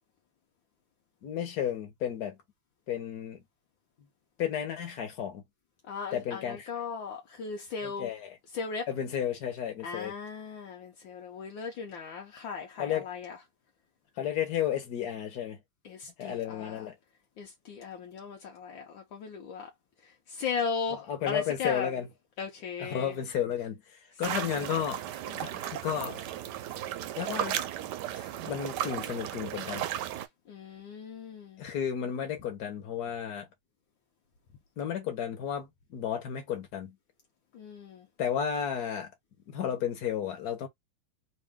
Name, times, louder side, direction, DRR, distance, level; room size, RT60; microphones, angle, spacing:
voice 1, 1.2-2.4 2.9-3.4 4.4-5.4 6.1-6.6 7.8-8.4 8.9-10.1 12.8-13.1 14.2-15.6 16.2-16.9 20.9-22.1 22.8-23.8 24.2-25.0 25.4-26.3 27.2-27.6 28.1-29.9 31.6-33.5 34.8-36.9 38.2-39.1 39.5-40.7, left 9 dB, 55° left, 1.6 m, -33 dB
voice 2, 5.9-8.1 8.5-8.9 9.8-13.4 15.8-16.9 17.4-19.7 20.0-21.9 22.4-23.2 24.3-24.8 25.3-25.6 30.5-31.6 37.5-38.1, left 5 dB, 70° left, 1.5 m, -37 dB
sound 1, 24.2-30.3, right 11 dB, 75° right, 1.0 m, -35 dB
3.6 x 2.6 x 3.6 m
omnidirectional pair, 2.2 m